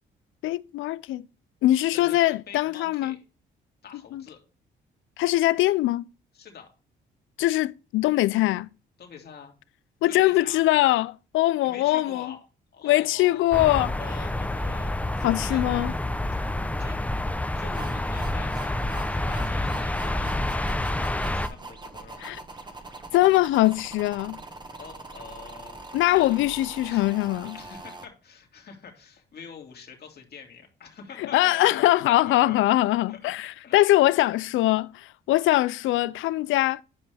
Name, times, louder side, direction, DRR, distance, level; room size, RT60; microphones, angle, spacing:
voice 1, 0.4-1.3 1.6-3.1 4.1-4.2 5.2-6.1 7.4-8.7 10.0-12.3 12.8-13.9 15.2-15.9 22.2-22.4 23.1-24.4 25.9-27.6 31.2-36.8, left 16 dB, 80° left, 0.4 m, -22 dB
voice 2, 1.9-3.2 3.8-4.4 6.3-6.7 9.0-9.6 10.1-10.6 11.6-12.4 12.7-13.6 13.9-15.7 16.8-17.0 17.5-18.8 19.1-22.2 24.8-26.4 26.8-33.8, left 6 dB, 55° left, 2.4 m, -45 dB
sound 1, 13.5-21.5, left 1 dB, 5° left, 0.7 m, -28 dB
sound 2, 17.7-28.1, right 3 dB, 20° right, 1.3 m, -42 dB
9.7 x 5.3 x 3.4 m
cardioid pair, 90°, 20 cm